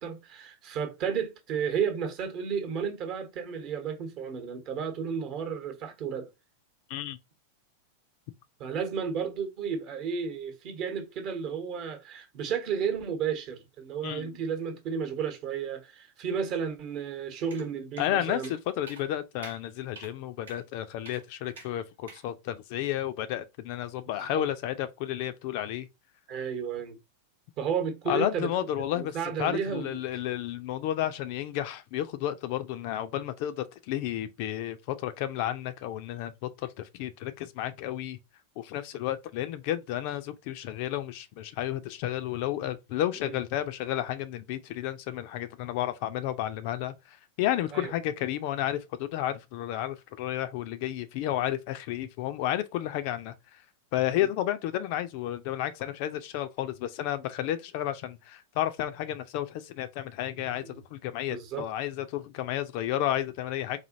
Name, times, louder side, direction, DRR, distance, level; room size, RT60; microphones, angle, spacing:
voice 1, 0.0-6.3 8.6-18.5 24.2-24.4 26.3-27.0 27.6-28.5 28.9-30.0 43.2-43.4 47.7-47.9 54.1-54.3 60.6-60.8 61.3-61.7, right 7 dB, 40° right, 0.9 m, -32 dB
sound 1, 17.5-17.7 18.0-18.1 18.4-18.6 18.9-19.1 19.4-19.6 20.0-20.1 20.5-20.6 21.1-21.2 21.6-21.7 22.1-22.2, right 4 dB, 65° right, 1.0 m, -47 dB
voice 2, 18.0-25.9 28.1-38.2 38.6-53.6 53.9-63.8, left 12 dB, 45° left, 0.4 m, -32 dB
4.1 x 2.7 x 2.5 m
figure-of-eight pair, 90°, 0 cm